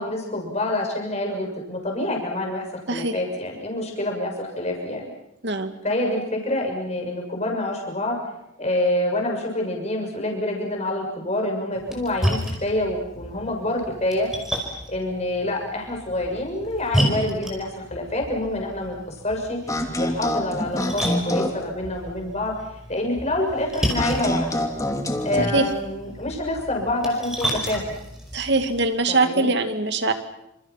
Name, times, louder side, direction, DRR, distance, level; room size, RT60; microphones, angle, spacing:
voice 1, 0.0-5.1 5.8-8.2 8.6-14.3 14.9-22.5 22.9-24.6 25.2-27.8 29.1-29.5, left 1 dB, 30° left, 1 dB, 6.7 m, -27 dB
Splash splatter, 11.8-28.9, equal, ahead, 5.1 m, -32 dB
sound 1, 19.7-21.6 23.9-25.6, left 1 dB, 15° left, 2.8 m, -26 dB
voice 2, 28.3-30.1, right 3 dB, 55° right, 8 dB, 2.3 m, -22 dB
29.0 x 27.0 x 5.9 m, 0.84 s
head